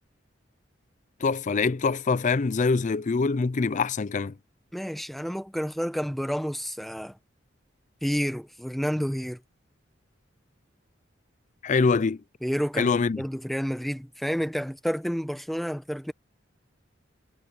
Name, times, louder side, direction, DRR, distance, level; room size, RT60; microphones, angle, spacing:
voice 1, 1.2-4.3 11.6-12.2 12.8-13.2, left 4 dB, 40° left, 0.4 m, -24 dB
voice 2, 4.7-7.2 8.0-9.4 12.4-16.1, equal, ahead, 1.0 m, -30 dB
head